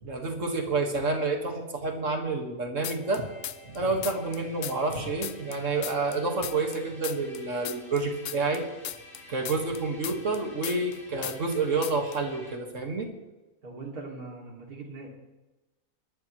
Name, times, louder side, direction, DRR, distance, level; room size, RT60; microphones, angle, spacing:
voice 1, 0.0-3.3 3.6-8.7 9.3-13.1, right 3 dB, 55° right, 3 dB, 2.1 m, -29 dB
sound 1, 2.8-3.8 4.0-6.8 7.0-11.0 11.2-11.6 11.8-12.2, left 11 dB, 65° left, 0.6 m, -37 dB
sound 2, 3.0-12.5, left 1 dB, 85° left, 4.8 m, -51 dB
voice 2, 13.6-15.1, right 3 dB, 85° right, 0 dB, 3.1 m, -41 dB
22.0 x 12.0 x 3.2 m, 1.1 s
omnidirectional pair, 1.5 m